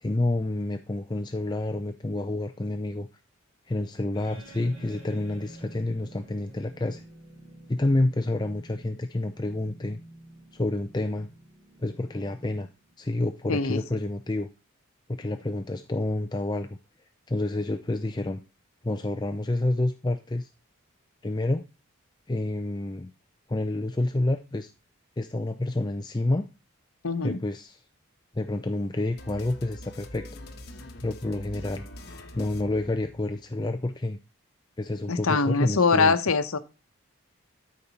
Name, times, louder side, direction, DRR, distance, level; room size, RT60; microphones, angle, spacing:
voice 1, 0.0-3.1 3.7-7.0 7.7-10.0 10.5-11.3 11.8-12.7 13.0-14.5 15.1-16.8 17.3-18.4 18.8-20.5 21.2-21.6 22.3-23.1 23.5-24.7 25.2-26.5 27.2-27.8 28.3-30.3 31.0-31.9 32.3-34.2 34.8-36.2, left 2 dB, 20° left, 6 dB, 0.5 m, -28 dB
sound 1, 4.1-13.0, right 1 dB, 40° right, 4.2 m, -49 dB
voice 2, 13.5-13.8 27.0-27.4 35.1-36.6, left 4 dB, 85° left, 10 dB, 0.9 m, -23 dB
sound 2, 29.2-33.5, left 1 dB, 50° left, 1.2 m, -44 dB
13.0 x 5.2 x 4.1 m, 0.31 s
head